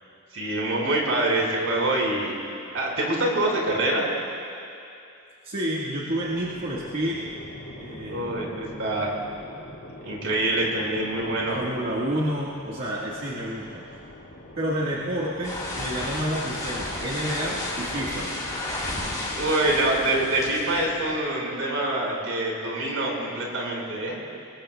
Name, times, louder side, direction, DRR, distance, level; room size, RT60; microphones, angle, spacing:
voice 1, 0.3-2.3 2.7-4.1 8.1-9.1 10.0-11.6 19.3-24.2, right 1 dB, 70° right, -2 dB, 4.7 m, -25 dB
voice 2, 5.4-7.3 7.8-8.6 11.5-13.8 14.6-18.4, equal, 50° right, -6 dB, 1.6 m, -29 dB
sound 1, 6.2-21.2, left 1 dB, 75° left, 2.0 m, -43 dB
sound 2, 15.4-20.9, left 1 dB, 20° left, 4.4 m, -32 dB
27.5 x 21.0 x 2.3 m, 2.6 s
head